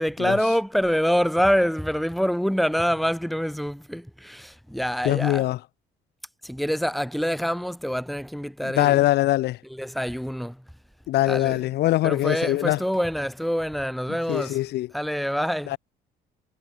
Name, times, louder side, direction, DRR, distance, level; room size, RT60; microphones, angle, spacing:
voice 1, 0.0-5.4 6.4-9.0 9.7-10.6 11.3-11.6 12.0-14.6 14.9-15.8, equal, ahead, 6.8 m, -26 dB
voice 2, 5.0-5.6 8.6-9.6 11.1-12.8 14.3-14.9 15.7-15.8, left 15 dB, 75° left, 5.3 m, -22 dB
cardioid pair, 110°, 17 cm